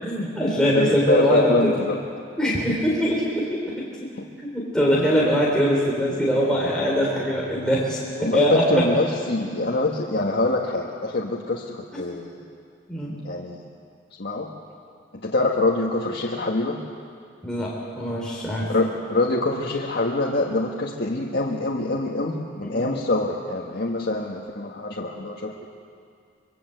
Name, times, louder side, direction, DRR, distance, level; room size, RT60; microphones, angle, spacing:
voice 1, 0.0-1.7 2.4-3.8 4.4-8.6 12.9-13.1 17.4-18.8 22.6-22.9, equal, 5° left, -5 dB, 3.7 m, -23 dB
voice 2, 0.7-2.0 8.2-12.4 13.2-13.6 14.2-14.5 15.2-16.8 18.7-25.5, left 2 dB, 55° left, -2 dB, 1.6 m, -24 dB
25.5 x 22.5 x 7.9 m, 2.3 s
head